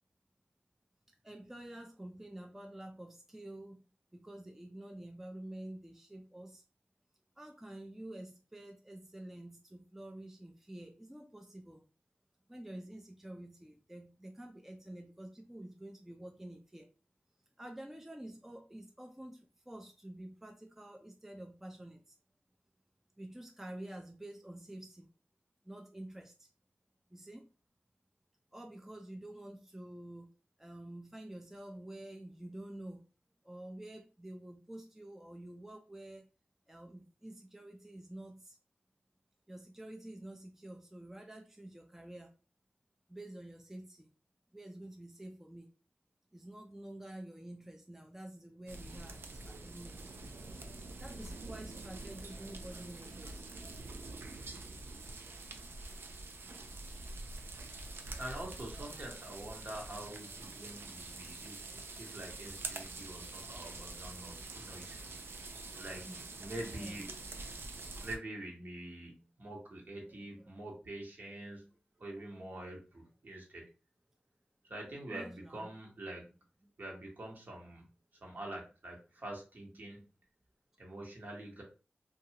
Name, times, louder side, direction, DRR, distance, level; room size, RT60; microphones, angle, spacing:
voice 1, 1.2-3.8 4.1-6.6 7.4-11.8 12.5-16.9 17.6-22.2 23.2-25.1 25.6-26.5 27.1-27.5 28.5-30.3 30.6-33.1 33.4-36.3 36.7-38.6 39.5-42.3 43.1-44.1 44.5-45.7 46.3-50.0 51.0-53.4 66.0-66.2 66.7-67.1 70.4-70.5 75.1-75.8, right 1 dB, 10° right, 3 dB, 0.4 m, -49 dB
sound 1, 48.7-68.2, right 3 dB, 75° right, 0.4 m, -46 dB
voice 2, 58.2-65.0 65.7-66.1 66.4-67.1 68.0-71.7 72.0-73.6 74.6-76.3 76.8-77.9 78.2-80.1 80.8-81.6, right 1 dB, 55° right, -1 dB, 1.1 m, -45 dB
2.6 x 2.3 x 2.8 m, 0.34 s
cardioid pair, 55°, 4 cm